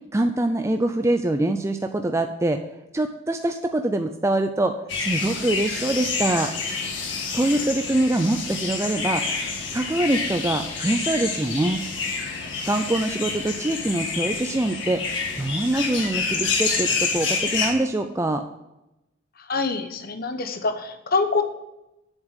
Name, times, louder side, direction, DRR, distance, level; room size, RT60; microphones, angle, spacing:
voice 1, 0.1-2.6 2.9-6.5 7.3-9.2 9.7-11.8 12.7-15.0 15.4-18.4, right 1 dB, 15° right, 6 dB, 0.4 m, -24 dB
sound 1, 4.9-17.7, left 4 dB, 65° left, 1.9 m, -28 dB
voice 2, 19.4-21.4, left 4 dB, 50° left, 7 dB, 1.0 m, -25 dB
8.2 x 7.0 x 7.4 m, 0.93 s
head